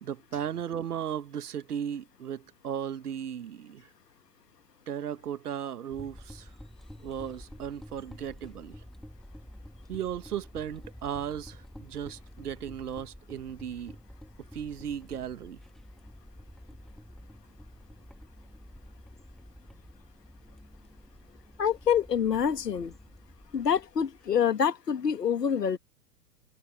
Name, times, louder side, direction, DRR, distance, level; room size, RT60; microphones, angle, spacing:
voice 1, 0.0-3.9 4.9-6.5 7.0-8.8 9.9-14.0 14.5-15.6, right 9 dB, 65° right, 1.9 m, -36 dB
sound 1, 5.9-24.4, equal, ahead, 2.7 m, -49 dB
voice 2, 21.6-22.9 23.5-25.8, left 7 dB, 75° left, 2.0 m, -26 dB
figure-of-eight pair, 110°, 49 cm